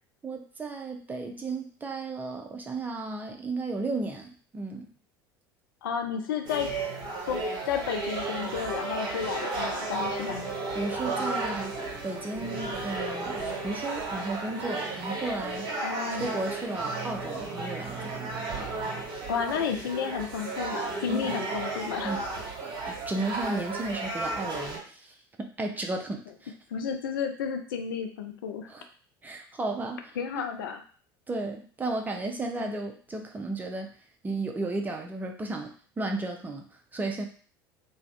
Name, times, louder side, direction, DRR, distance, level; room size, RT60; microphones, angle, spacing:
voice 1, 0.2-4.9 10.7-11.8 12.0-15.7 16.1-18.5 21.1-21.3 22.0-22.2 22.9-26.5 28.7-28.8 29.2-30.0 31.3-33.9 34.2-36.6 36.9-37.2, right 2 dB, 15° right, 2 dB, 0.5 m, -34 dB
voice 2, 5.8-6.7 7.3-10.5 15.8-16.3 19.3-22.2 26.7-28.7 30.2-30.8 32.7-32.8, left 7 dB, 65° left, 5 dB, 0.4 m, -32 dB
sound 1, 6.4-24.8, right 3 dB, 40° right, 1.3 m, -33 dB
2.6 x 2.3 x 3.2 m, 0.42 s
figure-of-eight pair, 70°, 12 cm